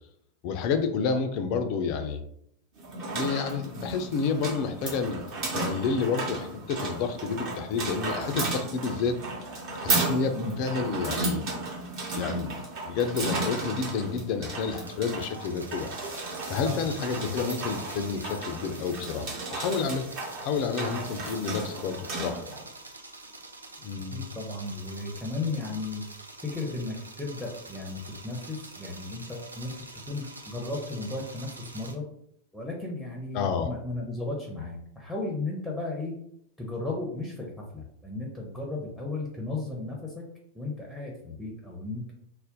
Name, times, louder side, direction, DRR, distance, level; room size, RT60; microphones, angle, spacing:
voice 1, 0.4-2.2 3.1-5.3 5.5-9.2 9.8-11.5 12.1-12.5 12.8-15.9 16.5-20.1 20.4-22.4 23.8-24.2 33.3-33.7, left 5 dB, 45° left, 7 dB, 0.4 m, -29 dB
sound 1, 2.8-22.6, right 2 dB, 45° right, 0.9 m, -34 dB
sound 2, 14.6-32.0, right 2 dB, 80° right, 0.4 m, -46 dB
voice 2, 24.1-26.0 26.4-32.0 32.5-36.1 36.6-37.5 37.7-40.2 40.5-42.1, left 2 dB, ahead, -2 dB, 0.6 m, -35 dB
2.5 x 2.1 x 3.7 m, 0.71 s
figure-of-eight pair, 90°, 0 cm